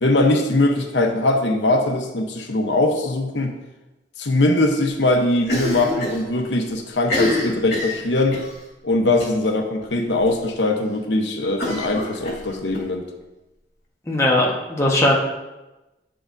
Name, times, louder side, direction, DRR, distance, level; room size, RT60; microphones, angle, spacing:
voice 1, 0.0-3.5 4.2-8.4 8.8-13.1, left 2 dB, 90° left, 3 dB, 0.9 m, -21 dB
Cough, 5.4-6.2 6.5-6.6 7.0-8.5 9.2-9.5 9.8-9.9 10.2-10.3 11.6-12.8, left 2 dB, 70° left, 2.4 m, -26 dB
voice 2, 14.1-15.1, left 1 dB, 15° left, -3 dB, 1.2 m, -19 dB
8.3 x 7.7 x 2.6 m, 1.0 s
head